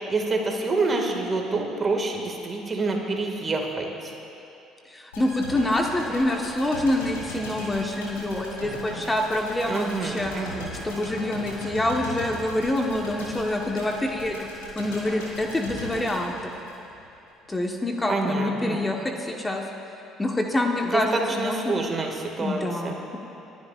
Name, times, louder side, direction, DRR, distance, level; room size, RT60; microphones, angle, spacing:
voice 1, 0.0-4.1 9.7-10.8 18.1-18.8 20.8-23.0, right 3 dB, 35° right, 2 dB, 2.1 m, -27 dB
voice 2, 4.9-10.3 10.8-14.5 14.7-16.5 17.5-19.6 20.2-21.7 22.4-23.2, left 1 dB, 20° left, 1 dB, 1.3 m, -26 dB
sound 1, 5.1-17.1 17.5-17.6, left 1 dB, 85° left, 2.8 m, -38 dB
29.0 x 11.5 x 2.5 m, 2.8 s
hypercardioid pair, 60°, 0 cm